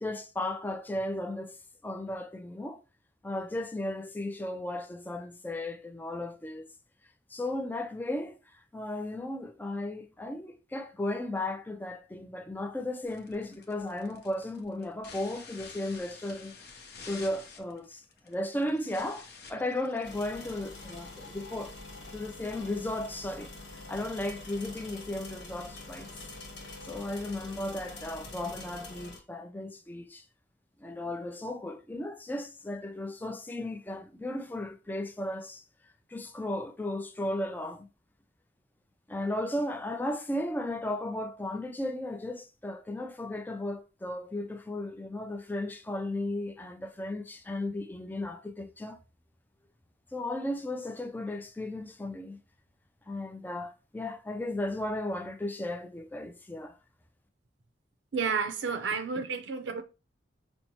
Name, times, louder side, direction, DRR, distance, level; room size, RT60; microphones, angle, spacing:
voice 1, 0.0-1.6 1.8-2.8 3.2-6.7 7.3-16.6 17.1-21.8 22.1-26.1 26.8-30.2 30.8-35.6 36.1-37.9 39.1-49.0 50.1-52.4 53.1-56.8, left 1 dB, 10° left, 0.4 m, -35 dB
sound 1, 13.0-22.6, left 5 dB, 60° left, 0.7 m, -51 dB
sound 2, 20.0-29.2, left 2 dB, 80° left, 1.3 m, -45 dB
voice 2, 58.1-59.8, right 5 dB, 80° right, 0.5 m, -31 dB
5.2 x 2.1 x 2.9 m
head